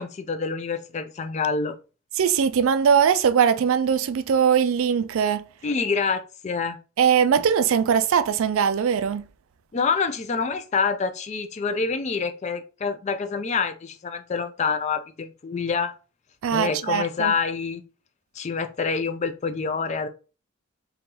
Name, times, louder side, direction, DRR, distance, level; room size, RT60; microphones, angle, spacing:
voice 1, 0.0-1.7 5.6-6.8 9.7-15.9 16.5-17.8 18.3-20.1, left 5 dB, 30° left, 0.3 m, -27 dB
voice 2, 2.2-5.4 7.0-9.3 16.4-17.3, right 7 dB, 70° right, 0.3 m, -21 dB
2.9 x 2.7 x 3.7 m
head